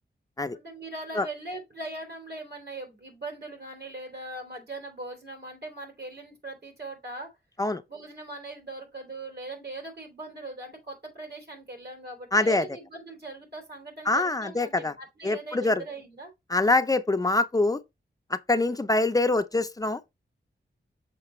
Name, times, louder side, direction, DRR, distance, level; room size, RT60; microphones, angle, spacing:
voice 1, 0.5-7.3 7.9-16.3, right 2 dB, 60° right, 3.4 m, -40 dB
voice 2, 12.3-12.7 14.1-14.9 15.2-15.8 16.5-17.8 18.3-20.1, left 2 dB, 20° left, 0.6 m, -24 dB
6.8 x 5.2 x 3.1 m
wide cardioid pair, 130°, 19 cm